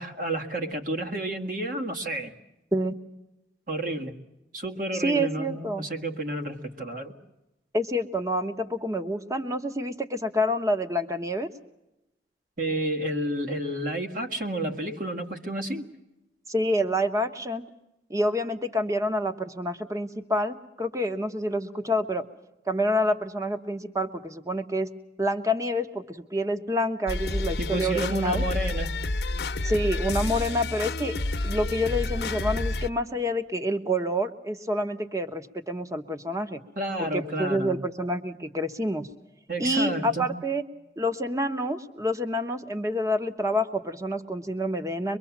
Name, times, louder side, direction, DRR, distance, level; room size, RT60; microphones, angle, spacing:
voice 1, 0.0-2.3 3.7-4.1 4.5-7.1 12.6-15.9 27.6-28.9 36.8-37.8 39.5-40.3, right 1 dB, 50° right, 6 dB, 1.8 m, -30 dB
voice 2, 5.0-5.8 7.7-11.5 16.5-17.6 18.1-22.2 22.7-24.9 25.2-28.4 29.6-36.6 37.0-39.1 39.6-40.6 41.0-45.2, equal, 20° right, 9 dB, 1.1 m, -28 dB
sound 1, 27.1-32.9, left 2 dB, 65° left, 0.9 m, -29 dB
23.5 x 23.0 x 7.3 m, 0.93 s
head